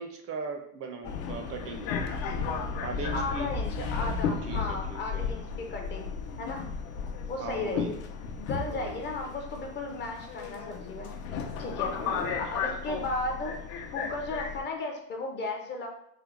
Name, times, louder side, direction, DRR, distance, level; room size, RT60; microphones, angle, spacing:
voice 1, 0.0-1.9 2.8-3.5 4.4-5.3 7.4-7.9 8.7-9.0 11.7-12.2, right 4 dB, 40° right, 4 dB, 0.4 m, -39 dB
Subway metro underground, 1.0-14.6, left 5 dB, 75° left, 0.7 m, -34 dB
voice 2, 3.1-6.1 6.4-6.7 7.3-8.0 8.4-11.1 11.6-12.0 12.4-13.6 13.9-15.9, left 2 dB, 30° left, 2 dB, 0.5 m, -35 dB
4.4 x 2.0 x 3.6 m, 0.76 s
cardioid pair, 160°, 38 cm